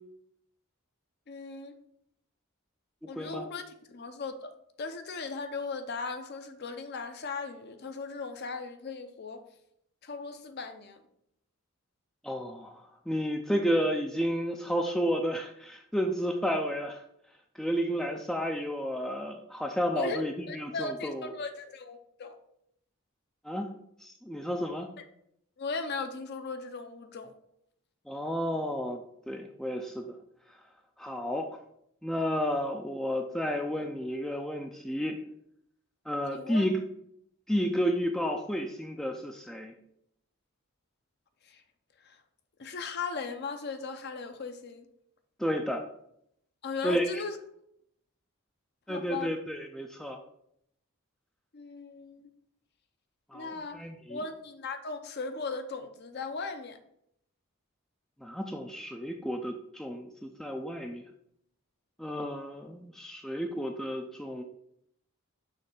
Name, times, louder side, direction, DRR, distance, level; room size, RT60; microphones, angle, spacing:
voice 1, 1.3-1.7 3.1-3.6 3.9-9.4 10.0-11.0 20.0-22.4 25.6-27.3 36.3-36.7 41.4-41.6 42.0-42.2 42.6-44.9 46.6-47.4 48.9-49.3 51.5-52.3 53.3-56.8, left 4 dB, 45° left, 8 dB, 0.6 m, -38 dB
voice 2, 3.2-3.5 12.2-17.0 17.5-21.3 23.4-23.7 24.0-24.9 28.1-30.2 31.0-31.6 32.0-35.2 36.1-36.8 37.5-39.7 45.4-45.8 46.8-47.2 48.9-50.2 53.3-54.2 58.2-61.0 62.0-64.4, equal, ahead, 3 dB, 0.3 m, -32 dB
6.4 x 3.2 x 5.3 m, 0.74 s
head